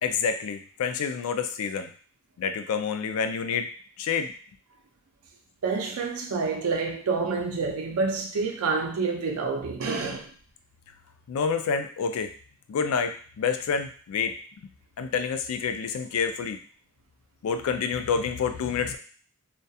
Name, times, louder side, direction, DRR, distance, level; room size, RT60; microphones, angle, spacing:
voice 1, 0.0-1.9 2.4-3.7 4.0-4.3 11.3-12.3 12.7-14.3 15.0-16.6 17.4-19.0, left 6 dB, 80° left, 8 dB, 0.3 m, -28 dB
voice 2, 5.6-10.3, right 4 dB, 80° right, 2 dB, 0.5 m, -28 dB
2.3 x 2.2 x 2.6 m, 0.43 s
head